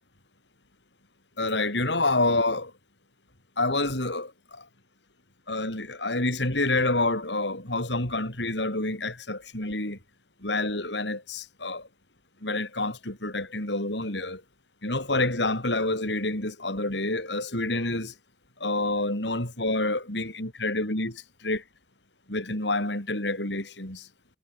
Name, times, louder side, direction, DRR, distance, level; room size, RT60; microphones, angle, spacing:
voice 1, 1.4-2.7 3.6-4.6 5.5-10.0 10.4-11.9 12.4-14.4 14.8-18.1 18.6-21.6 22.3-24.1, left 2 dB, 80° left, 6.9 m, -28 dB
head